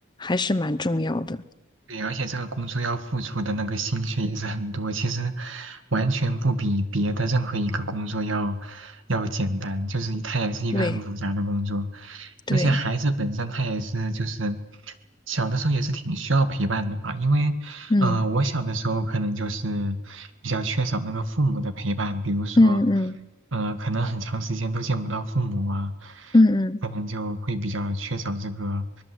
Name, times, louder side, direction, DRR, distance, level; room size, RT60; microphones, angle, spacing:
voice 1, 0.2-1.4 10.7-11.0 12.5-12.8 17.9-18.2 22.6-23.2 26.3-26.8, left 2 dB, 25° left, 15 dB, 0.7 m, -21 dB
voice 2, 1.9-14.6 14.9-15.0 15.3-22.8 23.5-26.4 26.9-29.0, right 2 dB, 80° right, 10 dB, 1.9 m, -27 dB
24.5 x 21.0 x 7.9 m, 0.98 s
head